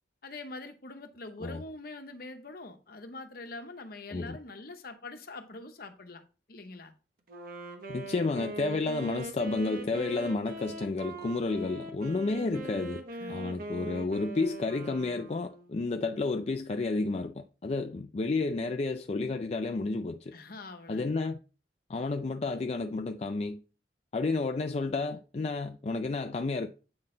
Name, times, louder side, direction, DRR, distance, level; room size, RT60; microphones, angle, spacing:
voice 1, 0.2-6.2 6.5-6.9 13.1-13.4 20.3-21.1, left 2 dB, 60° left, 1.0 m, -44 dB
Wind instrument woodwind instrument, 7.3-15.9, right 2 dB, 55° right, 1.1 m, -41 dB
voice 2, 7.9-13.0 13.3-20.3 20.9-21.4 21.9-23.6 24.1-26.7, left 3 dB, 35° left, 0.4 m, -31 dB
8.7 x 3.9 x 3.9 m
head